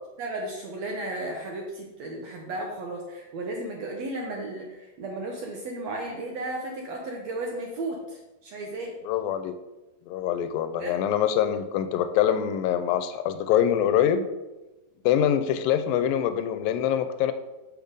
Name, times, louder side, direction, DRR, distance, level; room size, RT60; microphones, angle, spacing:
voice 1, 0.2-8.9 10.8-11.0, right 2 dB, 70° right, 0 dB, 1.7 m, -34 dB
voice 2, 9.1-9.5 10.1-14.3 15.1-17.3, left 10 dB, 85° left, 10 dB, 2.3 m, -24 dB
7.0 x 6.4 x 5.1 m, 1.1 s
omnidirectional pair, 4.1 m